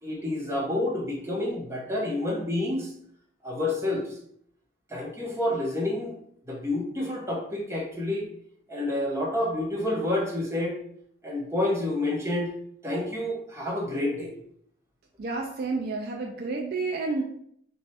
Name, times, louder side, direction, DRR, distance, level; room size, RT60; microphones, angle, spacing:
voice 1, 0.0-2.9 3.4-4.1 4.9-6.2 6.5-8.3 8.7-10.8 11.2-12.5 12.8-14.3, left 1 dB, 15° right, -3 dB, 0.8 m, -29 dB
voice 2, 15.2-17.2, right 3 dB, 55° right, 2 dB, 0.4 m, -30 dB
3.1 x 2.2 x 4.1 m, 0.68 s
head